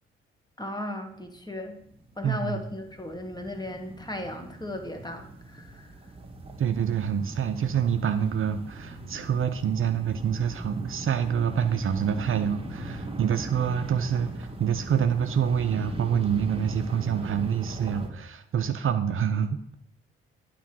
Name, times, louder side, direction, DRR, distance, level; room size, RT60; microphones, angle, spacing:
voice 1, 0.6-1.7 2.2-5.9, left 1 dB, 15° left, 5 dB, 1.7 m, -36 dB
sound 1, 1.1-1.3 1.5-18.1, right 2 dB, 20° right, 1.7 m, -40 dB
voice 2, 2.2-2.6 6.6-19.6, right 8 dB, 45° right, 8 dB, 0.6 m, -26 dB
9.2 x 4.6 x 5.9 m, 0.73 s
hypercardioid pair, 45°, 29 cm